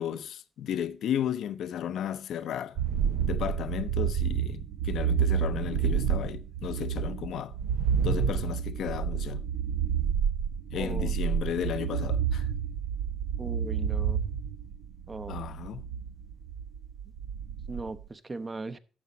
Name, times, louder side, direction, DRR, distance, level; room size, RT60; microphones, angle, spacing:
voice 1, 0.0-2.8 3.2-7.5 8.0-9.5 10.7-12.5 15.3-15.9, left 9 dB, 75° left, 0.7 m, -34 dB
sound 1, 2.8-18.0, right 8 dB, 85° right, 0.8 m, -29 dB
voice 2, 10.7-11.1 13.4-14.2 15.1-15.4 17.7-18.8, right 3 dB, 25° right, 0.8 m, -38 dB
12.0 x 7.3 x 4.0 m
cardioid pair, 90°, 0 cm